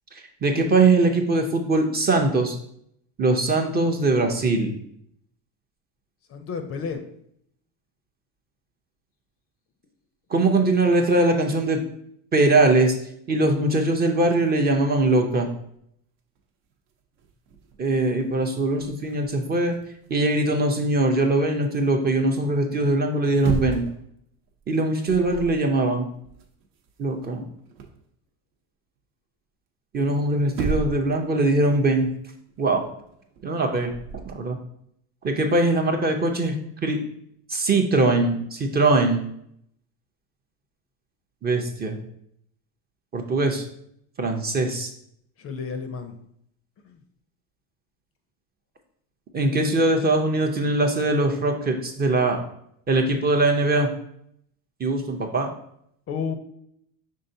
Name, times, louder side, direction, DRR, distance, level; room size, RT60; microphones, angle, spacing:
voice 1, 0.4-2.6 3.2-4.7 10.3-11.8 12.3-12.9 13.3-15.5 17.8-19.8 20.1-23.9 24.7-26.1 27.0-27.5 29.9-32.1 32.6-32.8 33.4-33.9 34.3-34.6 35.2-36.5 36.8-37.0 37.5-39.2 41.4-42.0 43.1-43.6 44.2-44.9 49.3-52.4 52.9-53.9 54.8-55.5, right 2 dB, 25° right, 4 dB, 0.5 m, -21 dB
voice 2, 6.3-7.0 45.4-46.2 46.9-47.0 56.1-56.3, left 6 dB, 35° left, 7 dB, 0.5 m, -31 dB
sound 1, 15.4-15.7 16.4-16.5 16.7-21.0 23.1-24.1 24.5-24.7 25.0-25.6 25.9-28.1 30.0-30.1 30.5-31.2 31.4-34.3, right 5 dB, 70° right, 0.9 m, -35 dB
5.4 x 3.7 x 2.6 m, 0.71 s
cardioid pair, 125°, 41 cm